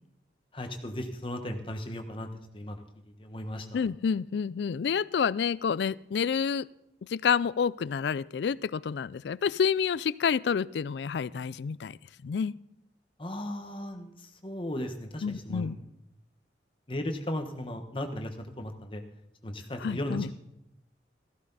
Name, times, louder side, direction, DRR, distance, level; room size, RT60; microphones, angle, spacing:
voice 1, 0.5-2.8 3.2-3.8 13.2-15.9 16.9-19.0 19.4-20.3, left 1 dB, 30° left, 6 dB, 1.2 m, -36 dB
voice 2, 3.7-6.7 7.1-12.0 12.2-12.6 15.2-15.8 19.8-20.3, left 6 dB, 75° left, 21 dB, 0.4 m, -29 dB
14.5 x 12.5 x 4.0 m, 0.83 s
head